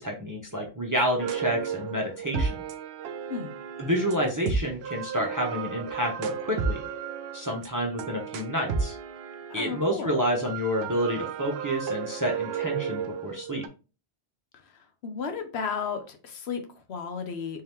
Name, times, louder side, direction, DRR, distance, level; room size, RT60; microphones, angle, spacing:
voice 1, 0.0-2.6 3.8-6.8 7.3-9.0 9.5-13.7, equal, 25° right, 0.5 m, -29 dB
sound 1, 1.2-9.9 10.5-13.7, right 6 dB, 70° right, 0.8 m, -33 dB
voice 2, 9.5-10.2 14.5-17.6, left 6 dB, 75° left, 0.9 m, -34 dB
3.6 x 2.8 x 3.4 m
omnidirectional pair, 1.1 m